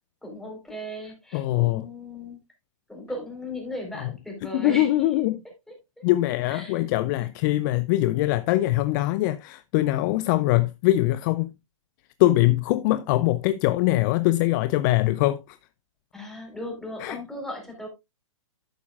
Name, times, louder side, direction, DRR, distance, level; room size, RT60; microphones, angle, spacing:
voice 1, 0.2-2.4 2.9-5.2 5.7-5.8 6.5-6.8 16.1-17.9, left 1 dB, ahead, 4.0 m, -37 dB
voice 2, 1.3-1.8 4.5-5.4 6.0-11.5 12.2-15.6 17.0-17.2, left 16 dB, 35° left, 0.5 m, -22 dB
11.5 x 8.4 x 2.4 m
hypercardioid pair, 125°, 17 cm